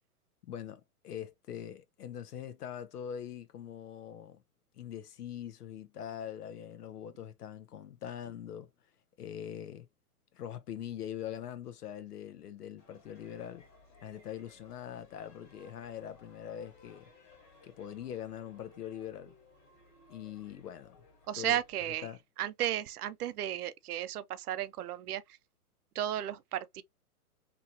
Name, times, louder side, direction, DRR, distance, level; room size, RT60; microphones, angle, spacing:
voice 1, 0.4-4.4 4.7-8.7 9.2-9.9 10.3-13.7 14.0-17.1 17.6-19.4 20.1-21.0 21.3-21.6 22.0-22.2, left 10 dB, 90° left, 0.8 m, -43 dB
sound 1, 12.8-22.1, left 2 dB, 30° left, 1.6 m, -61 dB
voice 2, 21.3-22.1 22.4-25.2 25.9-26.8, right 12 dB, 75° right, 0.5 m, -34 dB
2.9 x 2.8 x 2.6 m
hypercardioid pair, 160°, 45 cm